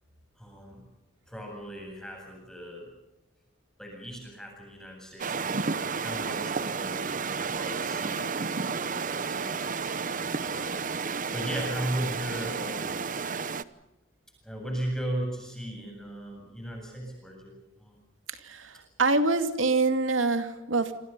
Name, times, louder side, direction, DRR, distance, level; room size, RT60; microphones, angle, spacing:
voice 1, 0.4-0.9 1.3-2.9 3.8-7.0 7.4-9.7 10.4-10.9 11.3-13.1 14.4-17.9, right 1 dB, 5° left, 1 dB, 7.9 m, -37 dB
sound 1, 5.2-13.6, right 5 dB, 45° right, 0.9 m, -31 dB
voice 2, 18.3-20.9, right 3 dB, 75° right, 8 dB, 2.6 m, -26 dB
28.0 x 27.0 x 5.5 m, 0.93 s
head